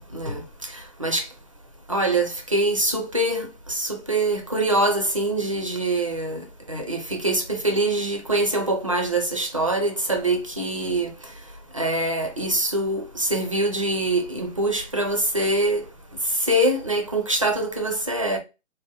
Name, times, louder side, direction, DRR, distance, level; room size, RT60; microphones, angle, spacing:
voice 1, 1.9-6.4 6.7-11.1 11.7-15.8 16.4-18.4, right 1 dB, 30° right, 0.4 m, -24 dB
3.9 x 2.1 x 3.6 m
figure-of-eight pair, 150°, 37 cm